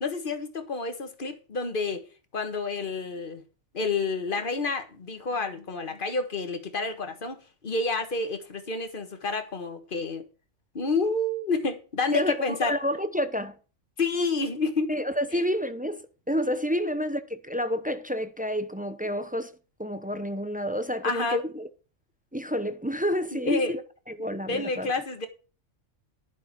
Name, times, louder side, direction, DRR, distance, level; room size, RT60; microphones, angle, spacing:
voice 1, 0.0-2.0 2.3-3.4 3.7-7.4 7.6-10.2 10.7-12.7 14.0-14.9 15.3-15.4 21.0-21.4 23.3-23.8 24.5-25.3, left 3 dB, 40° left, 1.6 m, -29 dB
voice 2, 12.1-13.6 14.9-19.5 19.8-21.7 22.3-23.8 24.1-24.9, equal, 10° right, 0.5 m, -29 dB
11.0 x 6.4 x 6.0 m
omnidirectional pair, 1.3 m